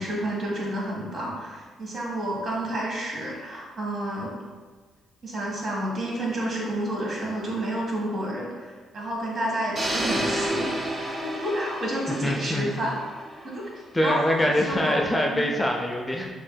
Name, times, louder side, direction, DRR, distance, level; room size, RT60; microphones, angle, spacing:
voice 1, 0.0-4.3 5.2-13.0 13.4-13.6 14.0-15.0 15.3-15.5, right 1 dB, 50° right, -4 dB, 1.3 m, -30 dB
sound 1, 9.7-13.8, right 1 dB, 30° right, 0.8 m, -30 dB
voice 2, 12.2-12.7 13.9-16.3, equal, 15° left, 1 dB, 0.4 m, -24 dB
6.2 x 2.5 x 2.2 m, 1.4 s
cardioid pair, 90°, 0 cm